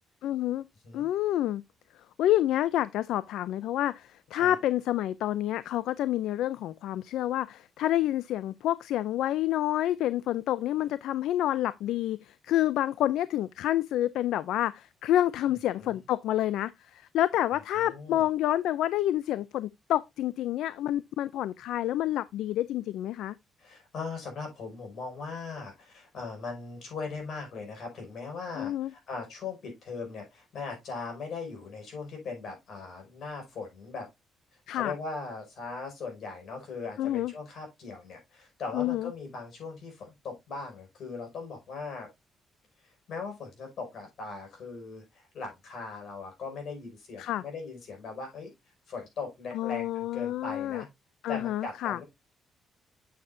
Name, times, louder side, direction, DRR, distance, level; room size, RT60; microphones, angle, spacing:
voice 1, 0.2-0.7 0.9-1.6 2.2-23.3 28.6-28.9 34.7-34.9 37.0-37.3 38.7-39.1 47.2-47.4 49.5-50.8 51.2-52.0, left 13 dB, 85° left, 0.3 m, -28 dB
voice 2, 17.8-18.2 23.6-34.1 34.7-42.1 43.1-48.5 48.9-50.9 51.3-52.0, left 4 dB, 65° left, 5.6 m, -39 dB
8.7 x 7.2 x 2.6 m
cardioid pair, 90°, 0 cm